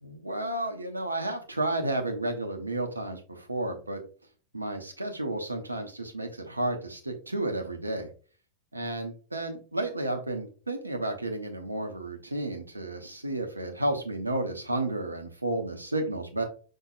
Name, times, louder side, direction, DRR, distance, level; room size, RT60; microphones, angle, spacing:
voice 1, 0.0-4.0 4.5-8.1 8.7-16.4, right 2 dB, 80° right, 3 dB, 0.8 m, -32 dB
5.6 x 2.7 x 2.4 m, 0.38 s
figure-of-eight pair, 90°, 0 cm